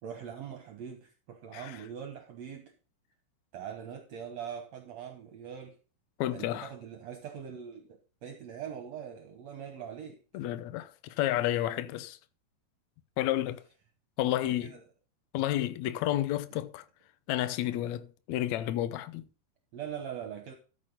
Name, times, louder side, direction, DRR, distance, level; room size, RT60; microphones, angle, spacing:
voice 1, 0.0-2.7 3.5-5.8 6.3-10.2 14.5-14.8 16.5-16.6 19.7-20.5, right 8 dB, 65° right, 2.1 m, -42 dB
voice 2, 6.2-6.7 10.3-12.2 13.2-13.6 14.2-14.7 15.3-16.9 17.3-19.3, left 13 dB, 75° left, 1.8 m, -31 dB
13.5 x 6.3 x 4.0 m
omnidirectional pair, 3.9 m